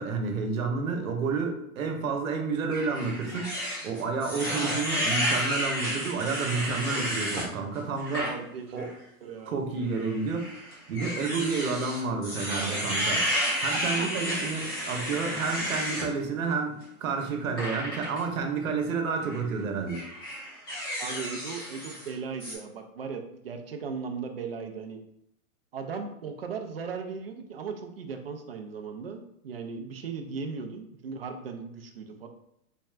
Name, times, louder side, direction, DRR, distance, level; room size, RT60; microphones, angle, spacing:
voice 1, 0.0-8.3 8.7-8.9 9.5-13.2 13.6-20.0, right 4 dB, 65° right, 4 dB, 1.0 m, -30 dB
sound 1, 2.7-7.5 8.0-8.3 8.8-8.9 9.9-16.1 17.6-18.2 19.2-19.4 19.9-22.1 22.4-22.5, equal, 15° left, 0.5 m, -31 dB
voice 2, 8.2-8.8 9.2-9.6 13.7-14.5 21.0-25.0 25.7-32.3, right 5 dB, 45° right, 5 dB, 0.4 m, -37 dB
4.3 x 2.4 x 3.2 m, 0.79 s
hypercardioid pair, 175°, 45 cm